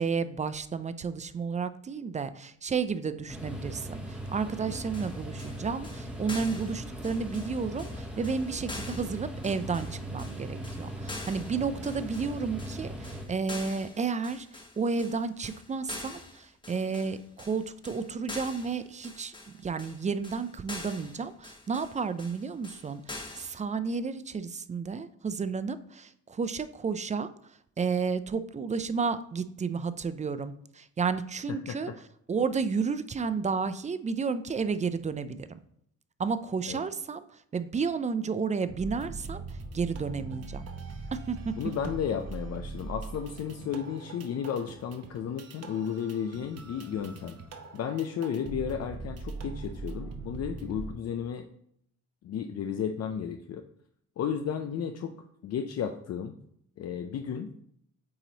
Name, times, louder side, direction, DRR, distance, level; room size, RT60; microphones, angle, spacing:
voice 1, 0.0-19.3 19.6-27.3 27.8-31.9 32.3-35.6 36.2-37.3 37.5-39.4 39.7-40.6 41.1-41.6, right 5 dB, 25° right, 13 dB, 0.4 m, -32 dB
sound 1, 3.3-13.3, equal, 5° right, 1.2 m, -39 dB
sound 2, 4.7-23.6, left 2 dB, 15° left, 1.1 m, -45 dB
sound 3, 38.7-50.9, right 3 dB, 55° right, 0.9 m, -41 dB
voice 2, 41.5-47.4 47.7-51.4 52.2-53.7 54.2-55.1 55.4-56.3 56.8-57.5, left 8 dB, 55° left, 6 dB, 0.5 m, -33 dB
8.6 x 3.0 x 4.0 m, 0.69 s
cardioid pair, 90°, 30 cm